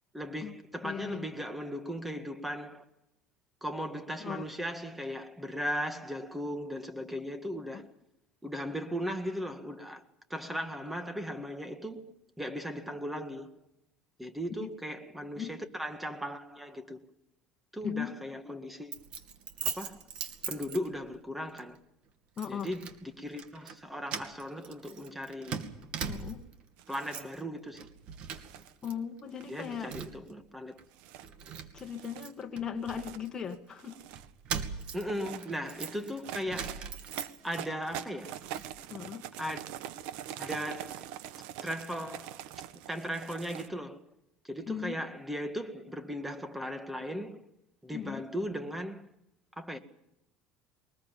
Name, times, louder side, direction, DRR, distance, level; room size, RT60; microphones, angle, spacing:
voice 1, 0.1-2.8 3.6-7.9 8.4-10.0 10.3-13.5 14.2-17.1 17.7-19.0 19.6-20.0 20.5-21.8 22.5-25.6 26.9-27.9 29.5-30.8 34.9-36.9 37.4-38.4 39.4-39.6 40.4-41.1 41.6-42.4 42.9-44.0 44.4-47.5 47.8-49.1 49.6-49.8, equal, 5° right, 2.0 m, -37 dB
voice 2, 0.8-1.2 4.2-4.4 7.7-7.8 14.6-14.7 15.4-15.5 17.8-18.1 18.4-18.5 22.4-22.7 26.1-26.4 28.8-29.9 31.7-34.0 38.9-39.3 44.7-44.9 47.9-48.2, left 8 dB, 25° left, 1.9 m, -38 dB
Keys jangling, 18.9-21.2 21.6-21.8 22.4-23.0 23.3-23.8 24.1-26.5 26.9-27.4 27.7-28.9 29.2-30.3 30.8-30.9 31.2-33.6 34.1-37.7 38.1-38.7, right 7 dB, 50° right, 2.5 m, -40 dB
sound 1, 26.8-27.3 28.2-28.7 29.4-30.2 30.9-31.2 31.8-32.2 32.8-33.2 33.7-34.3 35.0-43.7, right 11 dB, 75° right, 1.3 m, -44 dB
23.0 x 20.5 x 7.2 m
cardioid pair, 135°, 2 cm